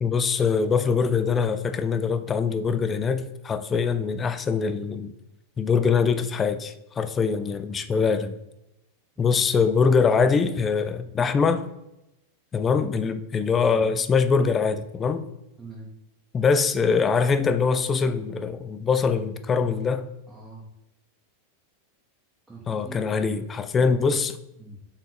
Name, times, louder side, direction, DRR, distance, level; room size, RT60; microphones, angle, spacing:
voice 1, 0.0-5.1 5.6-8.3 9.2-11.6 12.5-15.2 16.3-20.1 22.7-24.4, left 5 dB, 20° left, 0.3 m, -23 dB
voice 2, 15.6-15.9 20.3-20.6 22.5-23.3 23.8-23.9 24.6-24.8, right 2 dB, 10° right, 0.8 m, -43 dB
4.0 x 3.7 x 3.1 m
figure-of-eight pair, 90°, 0 cm